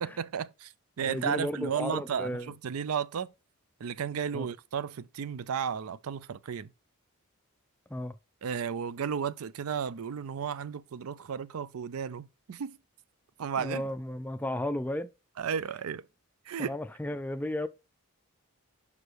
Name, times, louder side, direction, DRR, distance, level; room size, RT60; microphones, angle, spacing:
voice 1, 0.0-3.3 3.8-6.7 8.4-12.8 13.4-13.8 15.4-16.1 16.5-16.8, right 7 dB, 75° right, 0.4 m, -34 dB
voice 2, 1.0-2.5 4.3-4.5 7.9-8.1 13.6-15.1 16.6-17.7, left 1 dB, 5° left, 0.3 m, -34 dB
5.5 x 4.8 x 6.2 m
head